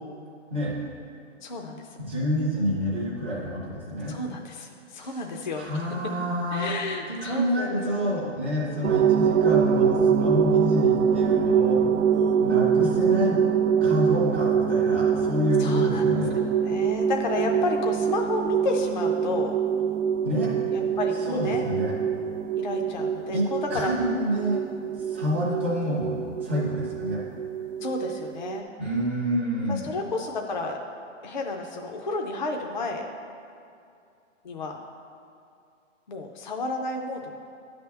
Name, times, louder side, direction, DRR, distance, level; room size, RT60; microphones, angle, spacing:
voice 1, 1.4-1.9 4.1-5.9 6.5-7.8 8.7-9.0 12.1-12.5 15.6-16.0 16.4-19.5 20.7-21.6 22.6-23.9 25.2-25.4 27.8-28.7 29.7-30.8 31.2-33.1 34.4-34.8 36.1-37.3, left 3 dB, 40° left, 1 dB, 0.4 m, -32 dB
voice 2, 2.0-4.2 4.9-5.2 5.5-6.7 7.1-11.8 12.1-13.4 13.8-16.4 20.2-20.5 21.3-21.9 23.3-24.6 25.0-26.2 26.4-27.2 28.8-29.9, equal, 10° right, -9 dB, 0.5 m, -28 dB
sound 1, 8.8-28.6, right 7 dB, 90° right, 0.6 m, -24 dB
10.0 x 3.4 x 6.6 m, 2.5 s
hypercardioid pair, 170°, 38 cm